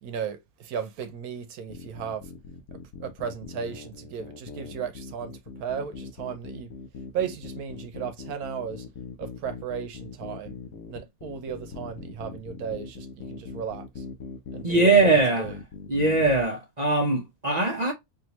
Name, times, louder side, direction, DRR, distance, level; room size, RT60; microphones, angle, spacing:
voice 1, 0.0-2.3 3.0-6.7 7.1-8.9 9.2-10.6 10.9-14.0 14.5-15.6, right 7 dB, 85° right, 1.2 m, -35 dB
sound 1, 1.7-16.4, left 5 dB, 70° left, 1.1 m, -41 dB
voice 2, 14.6-15.5 15.9-17.9, right 3 dB, 40° right, 0.7 m, -21 dB
3.6 x 2.6 x 2.8 m
omnidirectional pair, 1.6 m